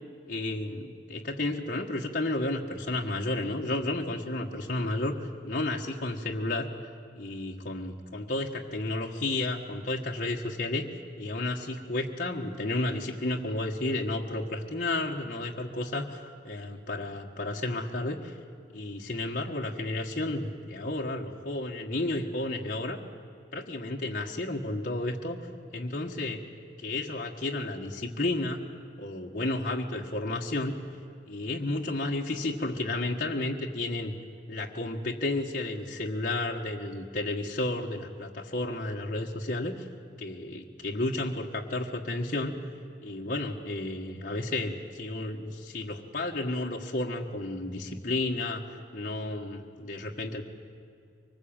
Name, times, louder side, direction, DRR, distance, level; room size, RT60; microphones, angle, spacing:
voice 1, 0.3-6.7 7.2-10.8 11.2-16.2 16.4-18.3 18.7-23.0 23.5-25.4 25.7-26.4 26.8-28.6 29.0-30.7 31.2-34.1 34.5-39.9 40.2-42.5 43.0-50.4, left 2 dB, 50° left, -1 dB, 1.5 m, -32 dB
24.5 x 20.5 x 8.9 m, 2.4 s
head